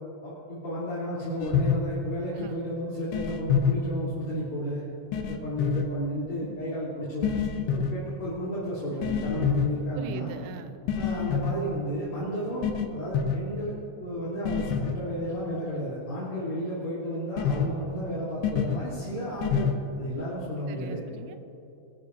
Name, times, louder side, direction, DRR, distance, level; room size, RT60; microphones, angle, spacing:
voice 1, 0.2-4.8 5.3-7.3 7.7-10.3 10.9-19.7 20.0-21.0, equal, 35° left, -10 dB, 3.8 m, -33 dB
sound 1, 1.4-1.8 3.1-3.7 5.1-5.9 7.2-7.9 9.0-9.7 10.9-11.6 12.6-12.9 13.1-13.4 14.5-14.9 17.4-17.7 18.4-18.8 19.4-19.7, left 7 dB, 75° left, 2.9 m, -26 dB
voice 2, 9.9-10.8 20.7-21.4, right 10 dB, 80° right, 9 dB, 2.7 m, -42 dB
23.5 x 13.5 x 2.7 m, 2.9 s
omnidirectional pair, 5.1 m